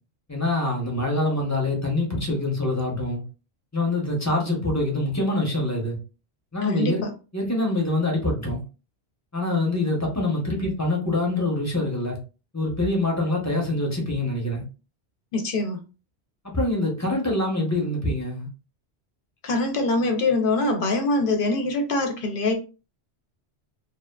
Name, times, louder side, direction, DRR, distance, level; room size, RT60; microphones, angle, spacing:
voice 1, 0.3-3.2 3.7-6.0 6.5-7.0 7.3-8.6 9.3-12.2 12.5-14.6 16.5-18.5, left 2 dB, 15° left, 0.7 m, -25 dB
voice 2, 15.3-15.8 19.4-22.5, left 2 dB, 60° left, 0.7 m, -23 dB
2.8 x 2.3 x 2.2 m
omnidirectional pair, 1.1 m